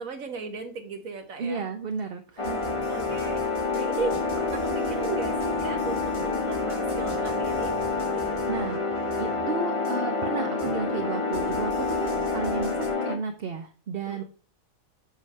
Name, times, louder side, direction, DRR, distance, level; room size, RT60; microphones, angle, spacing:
voice 1, 0.0-1.7 2.9-7.8 8.1-8.4 14.1-14.2, right 4 dB, 65° right, 6 dB, 1.5 m, -36 dB
voice 2, 1.4-2.6 8.5-8.8 9.2-12.8 13.0-14.2, right 5 dB, 50° right, 6 dB, 0.8 m, -32 dB
sound 1, 2.4-9.5 9.8-10.0 10.6-12.9, left 1 dB, 55° left, 2.1 m, -44 dB
sound 2, 2.4-13.2, left 3 dB, 25° left, 0.9 m, -28 dB
7.4 x 5.2 x 5.5 m, 0.38 s
omnidirectional pair, 1.6 m